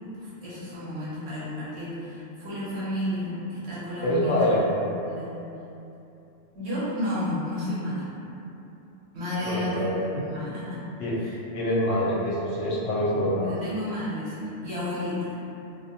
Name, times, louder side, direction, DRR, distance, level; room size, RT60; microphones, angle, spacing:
voice 1, 0.2-4.7 5.0-5.3 6.5-8.1 9.1-10.8 11.2-11.4 13.4-15.4, left 1 dB, 65° right, -10 dB, 1.0 m, -32 dB
voice 2, 4.0-4.6 9.4-10.0 11.0-11.2 11.5-13.5, equal, 75° left, -7 dB, 0.9 m, -25 dB
2.4 x 2.1 x 2.7 m, 2.8 s
omnidirectional pair, 1.3 m